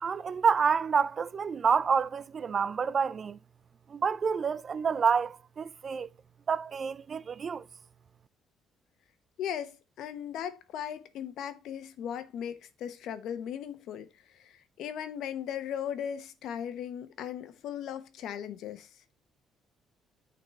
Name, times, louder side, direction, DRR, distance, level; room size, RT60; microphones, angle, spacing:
voice 1, 0.0-3.4 3.9-6.1 6.5-7.6, right 6 dB, 40° right, 0.4 m, -28 dB
voice 2, 9.4-18.9, left 9 dB, 75° left, 1.1 m, -38 dB
9.5 x 4.2 x 4.2 m
cardioid pair, 100°, 0 cm